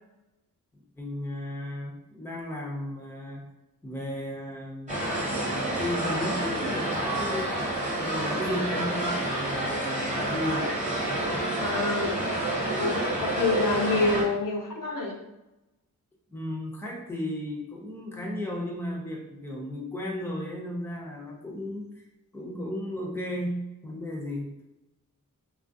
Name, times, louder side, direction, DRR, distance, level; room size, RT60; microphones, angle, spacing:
voice 1, 0.7-3.5 3.8-5.1 5.4-7.5 7.9-10.7 16.3-21.8 22.3-24.5, left 1 dB, 5° left, -1 dB, 0.5 m, -34 dB
sound 1, 4.9-14.2, right 1 dB, 20° right, 1.0 m, -29 dB
voice 2, 11.6-12.2 12.8-15.1, left 3 dB, 75° left, -1 dB, 0.8 m, -27 dB
3.7 x 2.4 x 2.6 m, 0.95 s
wide cardioid pair, 115°, 33 cm